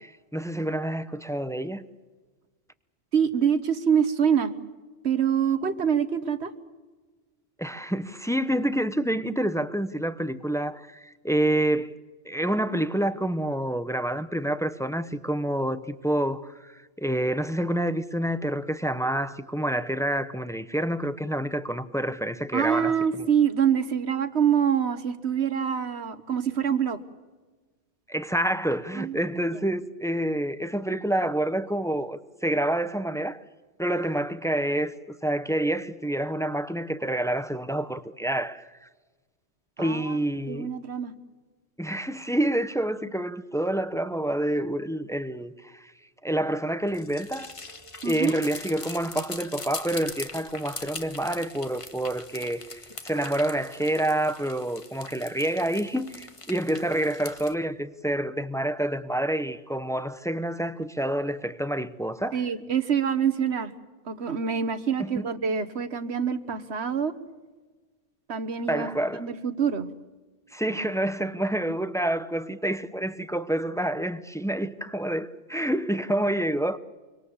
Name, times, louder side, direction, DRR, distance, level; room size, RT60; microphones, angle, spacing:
voice 1, 0.0-1.9 7.6-12.0 12.2-23.3 28.1-33.4 33.8-38.9 39.8-40.7 41.8-45.9 46.2-47.5 48.0-62.4 65.0-65.3 68.7-69.3 70.5-76.8, right 1 dB, 5° left, 0.7 m, -28 dB
voice 2, 3.1-4.5 5.0-6.5 22.5-27.0 29.0-29.2 39.8-40.2 40.5-41.1 48.0-48.3 62.3-63.7 64.1-67.1 68.3-68.9 69.2-69.9, right 7 dB, 70° right, 1.5 m, -25 dB
sound 1, 46.9-57.5, left 3 dB, 30° left, 1.3 m, -41 dB
25.0 x 25.0 x 7.2 m
omnidirectional pair, 1.2 m